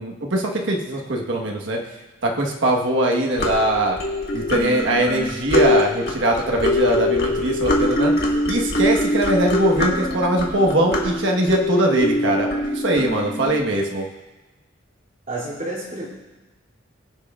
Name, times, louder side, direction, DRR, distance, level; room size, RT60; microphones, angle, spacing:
voice 1, 0.0-1.8 2.2-4.0 4.3-8.1 8.5-14.1, right 1 dB, 70° right, 0 dB, 1.3 m, -21 dB
sound 1, 3.3-13.6, left 1 dB, 55° left, 1.7 m, -23 dB
voice 2, 15.3-16.1, right 2 dB, 45° right, -6 dB, 2.8 m, -29 dB
21.0 x 7.2 x 2.4 m, 1.1 s
head